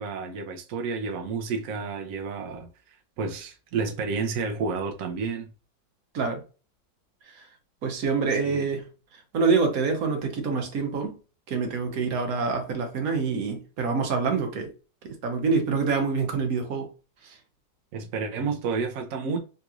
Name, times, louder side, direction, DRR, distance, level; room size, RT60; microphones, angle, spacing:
voice 1, 0.0-5.5 8.3-8.7 17.9-19.4, right 4 dB, 75° right, 0.7 m, -31 dB
voice 2, 7.8-8.9 9.1-11.2 11.5-14.7 15.0-16.9 17.2-17.4, right 4 dB, 60° right, 1.2 m, -26 dB
3.6 x 2.9 x 2.4 m
omnidirectional pair, 2.0 m